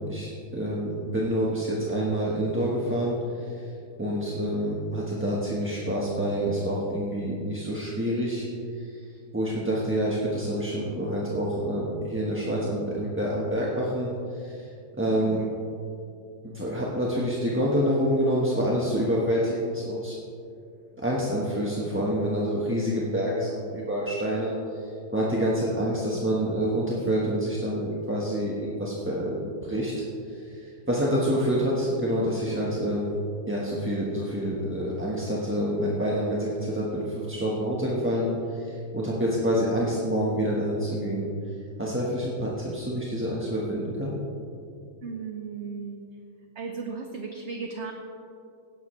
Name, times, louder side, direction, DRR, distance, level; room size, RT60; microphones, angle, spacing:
voice 1, 0.0-3.7 4.0-8.4 8.8-9.0 9.3-14.6 15.0-15.4 16.4-20.2 21.0-33.1 33.5-41.3 41.8-44.2, equal, 10° right, -5 dB, 1.0 m, -27 dB
voice 2, 15.1-15.5 31.3-31.6 45.0-46.0 46.5-47.9, right 5 dB, 55° right, 3 dB, 0.9 m, -36 dB
16.5 x 11.0 x 3.2 m, 2.5 s
omnidirectional pair, 1.8 m